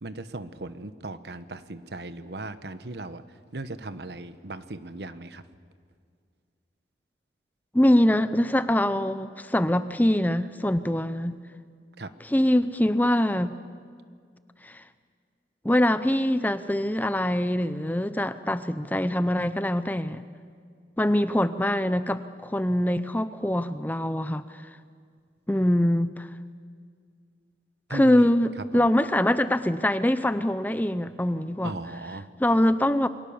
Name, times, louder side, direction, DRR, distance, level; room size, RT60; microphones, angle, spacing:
voice 1, 0.0-3.2 3.5-5.4 12.0-12.1 27.9-28.3 28.7-28.9 31.6-32.3, right 2 dB, 70° right, 12 dB, 1.1 m, -37 dB
voice 2, 7.7-11.4 12.2-13.6 14.6-14.8 15.6-20.2 21.0-24.7 25.5-26.3 27.9-31.8 32.4-33.1, left 1 dB, 10° left, 12 dB, 0.6 m, -24 dB
28.0 x 22.5 x 7.2 m, 2.1 s
head